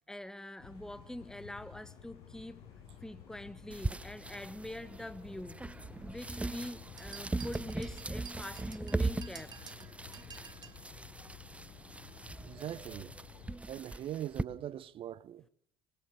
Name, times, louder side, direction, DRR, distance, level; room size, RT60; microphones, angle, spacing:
voice 1, 0.1-2.6 3.0-5.6 6.0-9.6, left 1 dB, 5° left, 1.5 m, -45 dB
sound 1, 0.6-13.6, left 8 dB, 60° left, 7.8 m, -53 dB
sonicsnaps fantine lylou louise mallet, 3.7-14.4, right 2 dB, 10° right, 1.0 m, -39 dB
sound 2, 7.0-10.8, right 7 dB, 35° right, 1.7 m, -52 dB
voice 2, 12.4-13.1 13.7-15.4, right 11 dB, 50° right, 0.9 m, -41 dB
25.5 x 20.0 x 6.7 m
hypercardioid pair, 65°, 12 cm